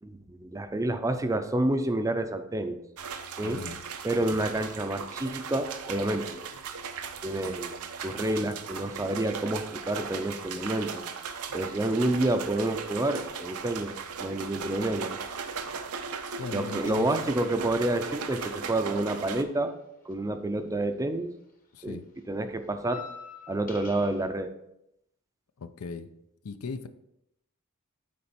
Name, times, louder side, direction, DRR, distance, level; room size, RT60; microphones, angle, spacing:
voice 1, 0.0-2.8 3.4-3.6 4.0-6.4 7.2-7.8 8.0-11.0 11.5-15.2 16.5-19.7 20.1-21.3 21.8-22.0 22.3-23.0 23.5-24.5, right 1 dB, 15° right, 8 dB, 0.5 m, -29 dB
sound 1, 3.0-19.4, right 6 dB, 90° right, 0.7 m, -38 dB
voice 2, 3.4-3.8 4.3-4.5 16.4-17.1 21.7-22.1 25.6-26.1 26.4-26.9, left 4 dB, 70° left, 11 dB, 0.5 m, -38 dB
sound 2, 16.7-17.5 17.7-21.1 21.4-24.3, left 6 dB, 40° left, 1.1 m, -49 dB
8.6 x 4.4 x 4.2 m, 0.81 s
head